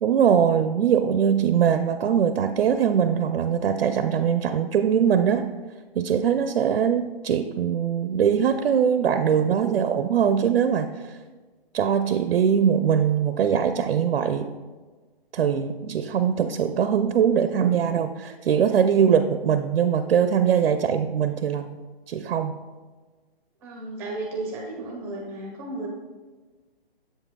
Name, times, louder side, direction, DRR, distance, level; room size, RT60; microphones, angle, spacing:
voice 1, 0.0-5.5 6.0-11.2 11.7-14.5 15.3-21.8 22.1-22.5, right 8 dB, 80° right, 9 dB, 0.5 m, -22 dB
voice 2, 23.6-25.9, right 2 dB, 10° right, -1 dB, 0.5 m, -33 dB
7.6 x 7.1 x 2.2 m, 1.3 s
hypercardioid pair, 155°, 30 cm